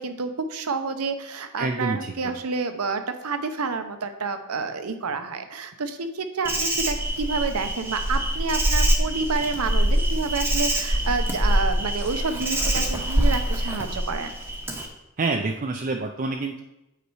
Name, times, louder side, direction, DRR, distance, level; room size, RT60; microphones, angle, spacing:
voice 1, 0.0-14.4, right 4 dB, 75° right, 8 dB, 0.7 m, -29 dB
voice 2, 1.6-2.3 15.2-16.6, right 3 dB, 35° right, 3 dB, 0.4 m, -27 dB
Insect, 6.4-14.9, right 1 dB, 10° right, 0.8 m, -24 dB
8.2 x 4.2 x 4.7 m, 0.92 s
head